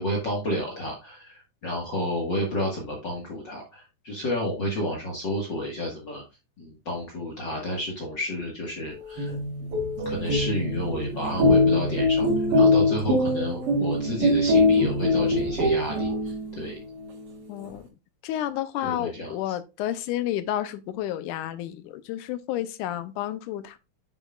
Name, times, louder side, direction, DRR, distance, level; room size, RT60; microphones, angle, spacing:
voice 1, 0.0-6.2 6.6-9.3 9.6-9.7 10.1-16.8 18.8-19.6, left 1 dB, 40° left, 1.9 m, -31 dB
sound 1, 9.0-16.7, left 2 dB, 55° right, 2.0 m, -23 dB
voice 2, 17.5-17.9 18.2-23.8, left 12 dB, 80° left, 2.1 m, -31 dB
8.4 x 6.7 x 2.4 m
omnidirectional pair, 3.7 m